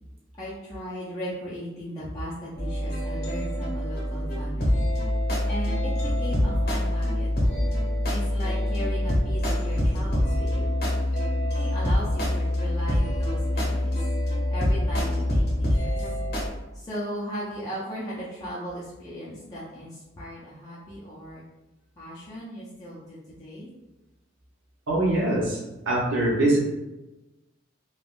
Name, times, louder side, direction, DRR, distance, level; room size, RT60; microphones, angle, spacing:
voice 1, 0.4-4.8 5.5-10.7 11.4-13.9 14.5-16.0 16.7-21.4 22.0-23.7, equal, 20° left, -9 dB, 0.5 m, -37 dB
sound 1, 2.6-16.5, left 1 dB, 55° left, 0.8 m, -25 dB
voice 2, 24.9-25.6 25.9-26.6, right 1 dB, 85° right, -4 dB, 0.8 m, -22 dB
3.4 x 2.3 x 2.4 m, 1.0 s
head